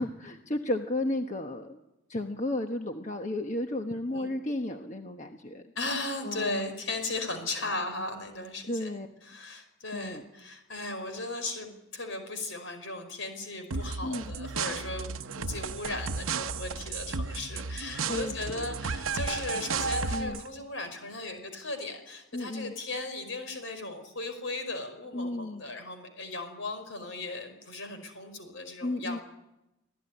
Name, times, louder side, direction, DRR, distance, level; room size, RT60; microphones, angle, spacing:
voice 1, 0.0-1.8 2.1-5.6 6.2-6.7 7.6-7.7 8.7-9.1 9.9-10.2 14.0-14.2 18.1-18.7 20.1-20.4 22.3-22.7 25.1-25.6 28.8-29.2, left 1 dB, 35° left, 4 dB, 1.2 m, -33 dB
voice 2, 5.8-8.9 9.2-29.2, left 2 dB, 70° left, 7 dB, 5.2 m, -37 dB
sound 1, 13.7-20.5, right 4 dB, 80° right, 0.8 m, -33 dB
26.5 x 16.5 x 9.9 m, 0.92 s
head